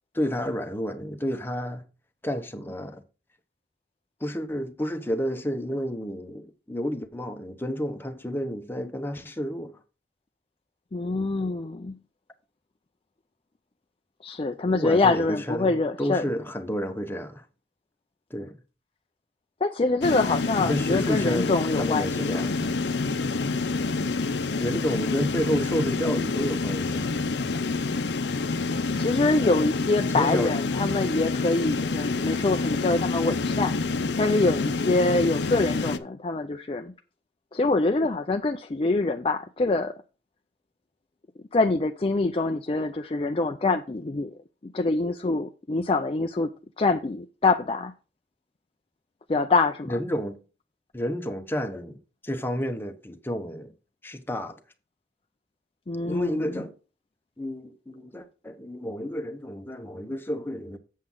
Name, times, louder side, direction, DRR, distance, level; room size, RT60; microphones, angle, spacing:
voice 1, 0.1-1.8 2.2-3.0 4.2-9.8 14.7-17.4 18.3-18.6 20.6-22.6 24.6-27.1 30.0-30.5 49.8-50.4 50.9-53.7 54.0-54.6 56.0-56.7 57.4-60.8, equal, 15° left, 1.0 m, -30 dB
voice 2, 10.9-12.0 14.2-16.3 19.6-22.4 28.6-33.7 34.2-36.9 37.5-39.9 41.5-44.3 44.6-46.5 46.8-47.9 49.3-49.9 55.9-56.5, left 3 dB, 30° left, 0.5 m, -25 dB
sound 1, 20.0-36.0, left 3 dB, 80° left, 0.7 m, -27 dB
7.7 x 7.3 x 3.8 m
head